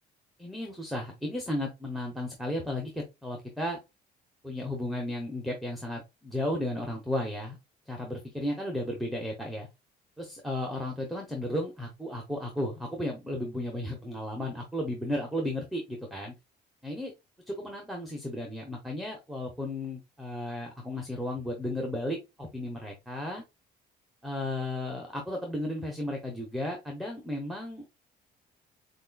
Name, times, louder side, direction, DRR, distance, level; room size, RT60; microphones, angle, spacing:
voice 1, 0.4-3.8 4.4-7.6 7.9-9.7 10.2-16.3 16.8-17.1 17.5-23.4 24.2-27.8, left 1 dB, ahead, 0 dB, 0.9 m, -34 dB
5.2 x 2.5 x 2.3 m, 0.23 s
cardioid pair, 110°, 17 cm